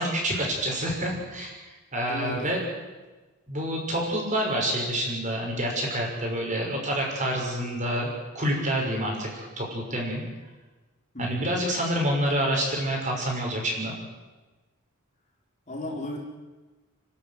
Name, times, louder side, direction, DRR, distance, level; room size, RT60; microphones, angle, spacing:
voice 1, 0.0-2.6 3.5-10.2 11.2-13.9, equal, 35° right, -1 dB, 6.3 m, -28 dB
voice 2, 2.1-2.5 11.1-11.5 15.7-16.2, left 1 dB, 35° left, -1 dB, 4.2 m, -34 dB
28.5 x 12.5 x 9.5 m, 1.2 s
head